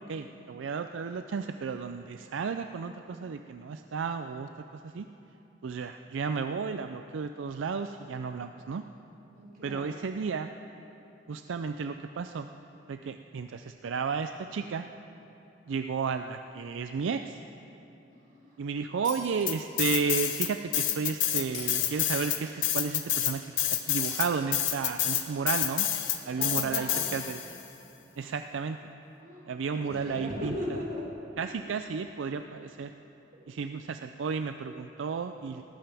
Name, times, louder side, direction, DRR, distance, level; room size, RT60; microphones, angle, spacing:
voice 1, 0.1-4.5 4.8-5.1 5.6-8.8 9.6-10.5 11.3-12.5 12.9-14.8 15.7-17.4 18.6-25.9 26.3-27.4 28.2-28.9 29.5-30.5 31.4-32.9 33.5-35.6, right 5 dB, 80° right, 8 dB, 0.4 m, -33 dB
voice 2, 9.3-10.2 18.1-18.6 26.4-27.1 29.2-31.1 33.3-33.5, left 1 dB, 50° right, -4 dB, 3.7 m, -39 dB
Shatter, 19.0-20.0 21.5-22.6 24.0-25.0, left 4 dB, 45° left, 2.7 m, -44 dB
sound 1, 19.5-20.5 20.7-27.6, left 11 dB, 75° left, 1.0 m, -28 dB
18.5 x 14.5 x 3.5 m, 3.0 s
head